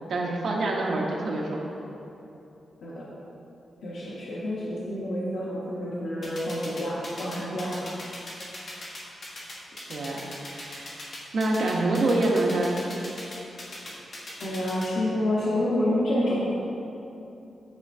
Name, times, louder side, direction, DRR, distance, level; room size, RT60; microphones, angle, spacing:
voice 1, 0.1-1.6 9.9-10.9 11.3-12.8, right 2 dB, 65° right, -1 dB, 0.8 m, -26 dB
voice 2, 3.8-7.9 14.4-16.6, left 1 dB, 90° left, -8 dB, 0.9 m, -28 dB
sound 1, 6.2-14.9, left 1 dB, 50° left, 1.1 m, -39 dB
9.5 x 4.2 x 2.6 m, 2.9 s
wide cardioid pair, 135°, 0 cm